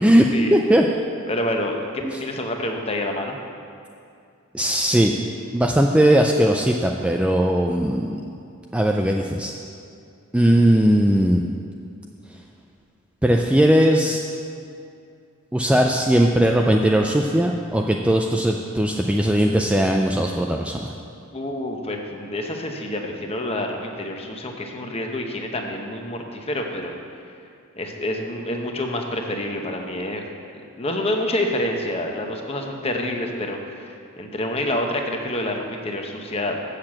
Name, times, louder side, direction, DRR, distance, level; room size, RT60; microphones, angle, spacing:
voice 1, 0.0-0.9 2.0-2.2 4.5-5.1 5.5-8.2 8.7-9.5 10.3-11.4 13.2-14.2 15.5-20.9, right 1 dB, 5° right, 1 dB, 0.3 m, -18 dB
voice 2, 1.3-3.4 21.3-26.9 27.8-30.3 30.8-36.6, left 1 dB, 30° left, 2 dB, 0.8 m, -27 dB
7.7 x 6.7 x 7.4 m, 2.5 s
head